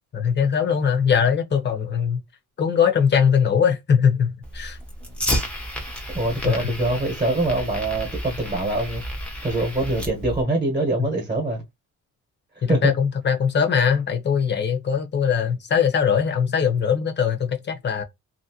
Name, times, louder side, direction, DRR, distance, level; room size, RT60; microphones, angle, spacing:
voice 1, 0.1-2.2 2.6-4.8 6.4-6.7 11.0-11.1 12.6-18.0, left 7 dB, 35° left, 0.8 m, -21 dB
Fire, 4.4-10.4, equal, 5° left, 0.7 m, -31 dB
voice 2, 6.1-9.0 9.4-11.6 12.7-12.8, right 2 dB, 20° right, 1.1 m, -24 dB
2.8 x 2.7 x 2.8 m
cardioid pair, 145°, 30 cm